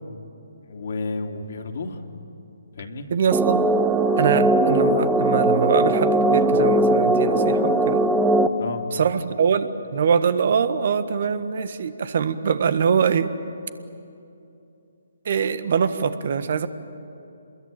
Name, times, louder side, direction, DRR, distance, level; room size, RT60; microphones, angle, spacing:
voice 1, 0.6-2.0 2.8-3.1 4.3-4.4 8.6-8.8, left 3 dB, 55° left, 4 dB, 2.9 m, -31 dB
voice 2, 3.1-3.7 4.2-8.0 8.9-13.3 15.2-16.7, right 6 dB, 55° right, 11 dB, 1.5 m, -23 dB
sound 1, 3.3-8.5, right 1 dB, 10° right, 1.3 m, -19 dB
27.5 x 21.5 x 9.1 m, 2.7 s
figure-of-eight pair, 140°, 0 cm